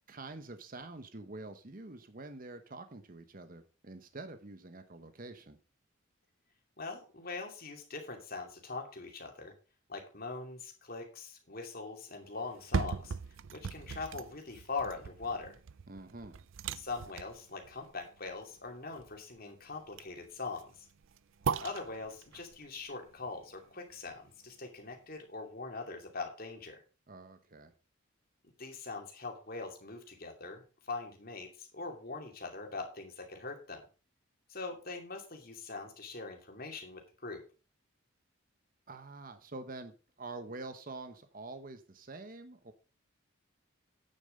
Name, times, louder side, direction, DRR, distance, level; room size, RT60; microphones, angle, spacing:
voice 1, 0.1-5.6 15.9-16.5 27.1-27.7 38.9-42.7, right 2 dB, 40° right, 9 dB, 1.0 m, -46 dB
voice 2, 6.8-9.5 9.9-13.1 13.5-15.6 16.7-20.9 21.6-26.8 28.6-33.8 34.5-37.4, left 3 dB, 45° left, 3 dB, 2.6 m, -42 dB
sound 1, 12.4-24.5 24.9-25.0, right 5 dB, 70° right, 0.5 m, -40 dB
9.4 x 7.1 x 5.3 m, 0.34 s
head